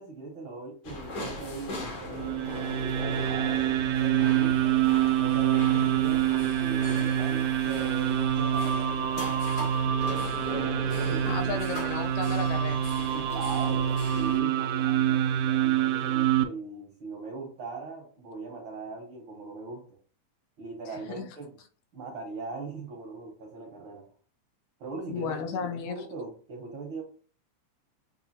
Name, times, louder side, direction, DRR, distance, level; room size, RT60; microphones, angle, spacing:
voice 1, 0.0-3.6 3.9-9.3 9.6-10.1 10.8-11.6 13.1-19.8 20.6-21.6 21.9-24.1 24.8-27.0, right 3 dB, 65° right, -1 dB, 1.3 m, -40 dB
sound 1, 0.8-14.4, left 2 dB, 65° left, 1.4 m, -39 dB
sound 2, 2.1-16.4, right 10 dB, 80° right, 2.0 m, -26 dB
voice 2, 11.2-12.9 20.9-21.2 25.1-26.0, left 6 dB, 80° left, 7 dB, 1.8 m, -34 dB
6.6 x 2.5 x 2.8 m, 0.40 s
omnidirectional pair, 3.5 m